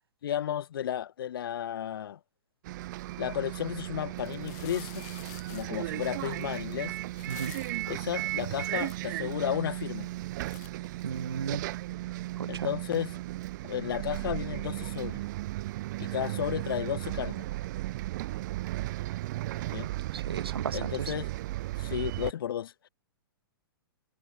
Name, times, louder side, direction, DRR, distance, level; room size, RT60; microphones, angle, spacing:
voice 1, 0.2-2.2 3.2-5.1 5.5-7.0 7.9-10.1 12.5-13.2 13.6-15.2 16.0-17.5 19.7-19.9 20.7-21.3 21.8-22.7, left 10 dB, 65° left, 3.5 m, -33 dB
Bus, 2.6-22.3, right 17 dB, 50° right, 0.7 m, -35 dB
sound 1, 3.6-3.7 4.1-7.9 8.4-8.5 8.7-9.4 9.9-10.1 10.4-11.6, left 24 dB, 45° left, 4.0 m, -49 dB
voice 2, 11.0-11.6 12.4-12.7 20.1-21.1, right 7 dB, 90° right, 0.4 m, -35 dB
hypercardioid pair, 115°, 12 cm